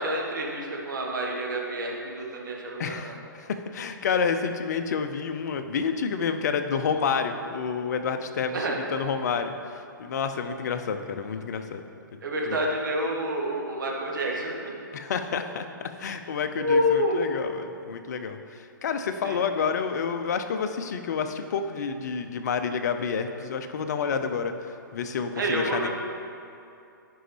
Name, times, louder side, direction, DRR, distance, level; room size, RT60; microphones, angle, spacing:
voice 1, 0.0-3.1 8.5-8.8 12.2-14.7 16.6-17.2 19.2-19.4 25.4-25.9, equal, 65° right, -1 dB, 1.4 m, -28 dB
voice 2, 2.8-11.8 12.5-12.6 14.9-15.7 16.0-24.5 24.9-25.9, left 6 dB, 55° left, 7 dB, 0.6 m, -29 dB
11.0 x 5.3 x 3.4 m, 2.6 s
figure-of-eight pair, 125°, 11 cm